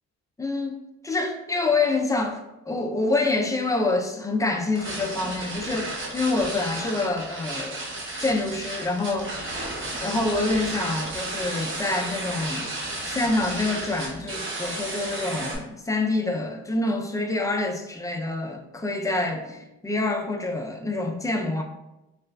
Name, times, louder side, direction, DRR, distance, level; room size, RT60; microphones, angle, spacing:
voice 1, 0.4-7.8 8.2-9.3 10.0-12.7 13.0-21.6, left 2 dB, 10° left, 2 dB, 0.4 m, -26 dB
sound 1, 4.7-15.5, right 2 dB, 40° right, 0.9 m, -33 dB
4.0 x 2.4 x 2.3 m, 0.94 s
cardioid pair, 90°, 30 cm